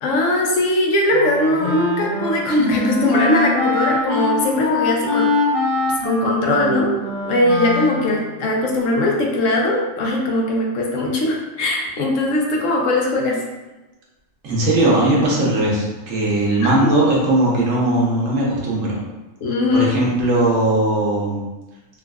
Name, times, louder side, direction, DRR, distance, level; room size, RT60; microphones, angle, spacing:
voice 1, 0.0-5.3 6.0-7.0 7.2-13.4 16.6-16.9 19.4-20.0, left 1 dB, 75° left, -1 dB, 0.9 m, -20 dB
Wind instrument woodwind instrument, 1.1-8.4, left 2 dB, 30° left, 0.7 m, -23 dB
voice 2, 14.4-19.0 19.7-21.4, right 1 dB, 75° right, -4 dB, 1.2 m, -18 dB
3.7 x 2.4 x 2.3 m, 1.1 s
omnidirectional pair, 1.4 m